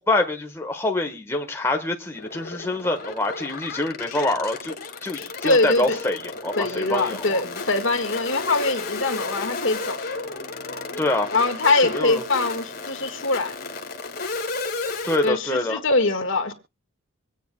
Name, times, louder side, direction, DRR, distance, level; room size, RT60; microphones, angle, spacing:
voice 1, 0.1-4.8 5.0-7.4 11.0-11.3 11.9-12.2 15.0-15.8, left 2 dB, 10° left, 1.3 m, -25 dB
sound 1, 2.1-15.3, left 3 dB, 45° left, 2.0 m, -33 dB
voice 2, 5.4-6.0 6.6-10.0 11.3-13.6 15.2-16.5, left 3 dB, 65° left, 1.7 m, -23 dB
25.0 x 9.2 x 2.2 m
head